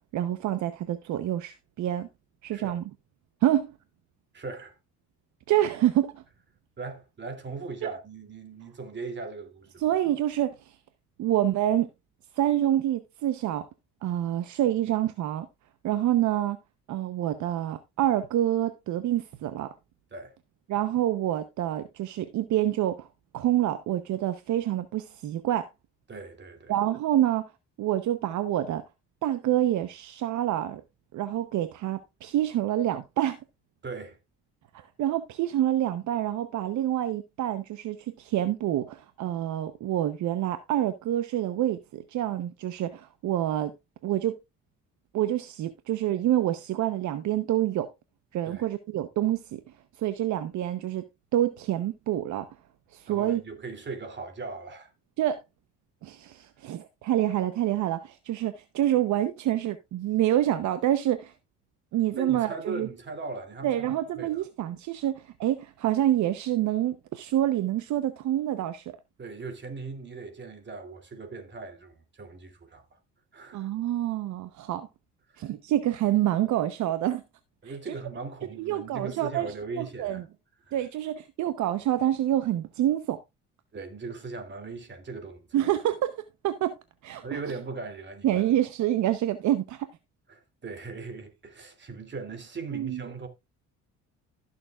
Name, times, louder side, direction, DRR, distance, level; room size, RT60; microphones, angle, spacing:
voice 1, 0.1-2.1 2.4-2.8 3.4-3.7 5.5-6.2 7.8-7.9 9.8-10.7 11.2-11.9 12.4-13.7 14.0-15.5 15.8-16.6 16.9-19.7 20.7-23.1 23.3-25.7 26.7-27.4 27.8-28.8 29.2-30.8 31.1-33.4 35.0-43.7 44.0-44.4 45.1-47.9 48.3-49.6 50.0-51.1 51.3-52.5 52.9-53.4 55.2-55.4 56.0-61.3 61.9-62.9 63.6-68.8 73.5-74.9 75.4-77.2 77.6-77.9 78.6-80.2 80.7-83.2 85.5-86.2 86.4-86.7 87.0-87.4 88.2-89.9 92.7-93.0, right 12 dB, 70° right, 0.9 m, -27 dB
voice 2, 4.3-4.7 6.8-9.8 20.1-20.4 26.1-26.7 33.8-34.2 48.4-48.7 53.1-54.9 62.2-64.4 69.2-72.8 73.3-73.7 75.3-75.4 77.6-80.2 80.7-80.8 83.7-85.7 87.2-88.4 90.3-93.3, right 4 dB, 35° right, 2.8 m, -39 dB
16.0 x 6.9 x 2.4 m
cardioid pair, 95°, 31 cm